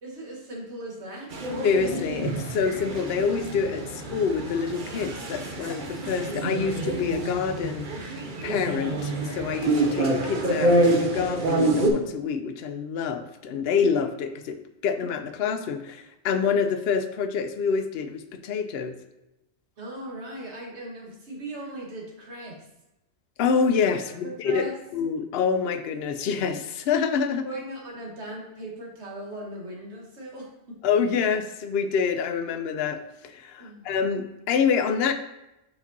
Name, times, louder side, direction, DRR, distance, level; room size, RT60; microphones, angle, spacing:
voice 1, 0.0-1.3 19.8-22.6 24.0-24.7 27.4-30.8 33.6-34.0, right 1 dB, 75° right, -2 dB, 1.8 m, -38 dB
sound 1, 1.3-11.9, right 2 dB, 50° right, 0.9 m, -27 dB
voice 2, 1.6-19.0 23.4-24.6 24.9-27.5 30.8-35.1, left 6 dB, 70° left, 8 dB, 0.8 m, -27 dB
5.3 x 5.0 x 4.0 m, 0.91 s
omnidirectional pair, 1.2 m